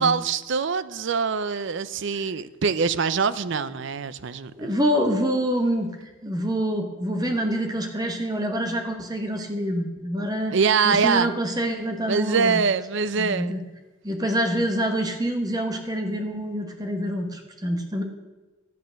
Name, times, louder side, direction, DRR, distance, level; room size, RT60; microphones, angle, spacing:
voice 1, 0.0-4.7 10.5-11.3 12.1-13.6, right 5 dB, 60° right, 15 dB, 0.5 m, -24 dB
voice 2, 4.5-10.5 10.8-12.6 13.2-13.6 14.0-18.0, equal, 20° right, 4 dB, 1.3 m, -26 dB
12.0 x 8.8 x 6.4 m, 1.2 s
head